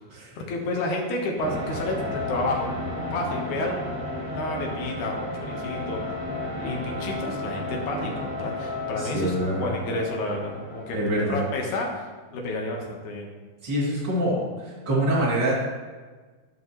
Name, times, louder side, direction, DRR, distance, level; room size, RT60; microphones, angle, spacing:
voice 1, 0.4-2.7 3.1-3.9 4.2-6.0 6.6-11.0 11.3-12.1 12.3-13.3, left 2 dB, 75° left, 0 dB, 2.6 m, -30 dB
sound 1, 1.4-11.4, left 1 dB, 80° right, 4.1 m, -33 dB
voice 2, 9.0-9.7 10.9-11.4 13.6-14.4 14.9-15.5, right 1 dB, 35° right, -8 dB, 3.1 m, -25 dB
13.5 x 5.5 x 3.1 m, 1.4 s
omnidirectional pair, 3.5 m